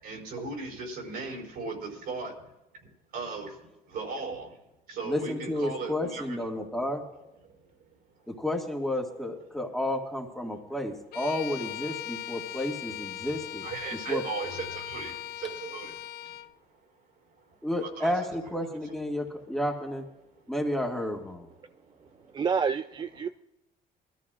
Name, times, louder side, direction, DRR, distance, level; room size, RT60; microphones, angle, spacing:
voice 1, 0.0-2.3 2.8-3.6 3.9-4.6 4.9-6.4 7.4-7.9 8.2-8.3 10.7-10.8 12.1-12.3 13.6-16.4 16.7-16.9 17.2-18.1 20.3-20.5 21.6-22.3, right 4 dB, 65° right, 0 dB, 4.4 m, -38 dB
voice 2, 5.1-7.0 8.4-13.7 14.1-14.2 17.6-20.0 20.5-21.5, left 1 dB, ahead, 0 dB, 1.9 m, -31 dB
Bowed string instrument, 11.1-16.5, left 12 dB, 65° left, 0.5 m, -39 dB
voice 3, 22.0-23.3, right 6 dB, 25° right, 11 dB, 0.3 m, -29 dB
21.0 x 13.5 x 2.5 m, 0.94 s
cardioid pair, 110°, 17 cm